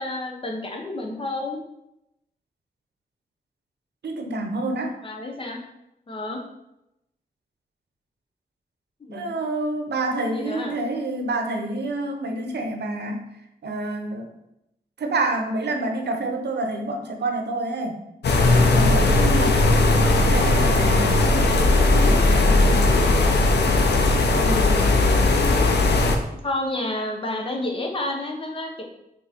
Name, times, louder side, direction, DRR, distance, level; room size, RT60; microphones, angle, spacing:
voice 1, 0.0-1.6 5.0-5.6 6.1-6.4 9.0-9.3 10.3-10.8 19.3-19.7 22.4-22.8 24.3-24.9 26.4-28.8, left 1 dB, 30° left, 1 dB, 1.0 m, -30 dB
voice 2, 4.0-5.0 9.1-13.2 13.6-14.3 15.0-18.0 18.7-19.5 19.9-23.1, right 2 dB, 85° right, 4 dB, 0.9 m, -28 dB
sound 1, 18.2-26.2, left 2 dB, 90° left, 0.8 m, -18 dB
6.4 x 3.7 x 4.5 m, 0.86 s
wide cardioid pair, 170°, 17 cm